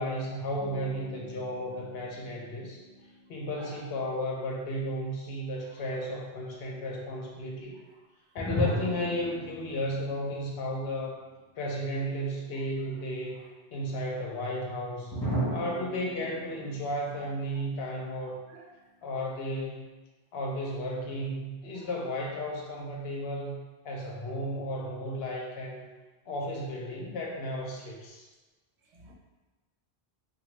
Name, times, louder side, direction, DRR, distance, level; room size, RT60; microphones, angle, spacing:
voice 1, 0.0-2.8 3.3-7.8 8.3-11.2 11.6-13.4 13.7-15.1 15.5-18.4 19.0-19.9 20.3-23.6 23.8-25.9 26.3-28.3, equal, 70° left, -1 dB, 0.8 m, -34 dB
sound 1, 0.6-3.9 8.4-11.4 11.7-11.8 15.1-18.4, equal, 20° left, 0.8 m, -37 dB
voice 2, 3.6-3.8 18.0-18.2 18.5-18.6 21.8-21.9 28.9-29.1, right 3 dB, 85° right, -1 dB, 0.9 m, -51 dB
2.9 x 2.3 x 3.1 m, 1.2 s
omnidirectional pair, 1.1 m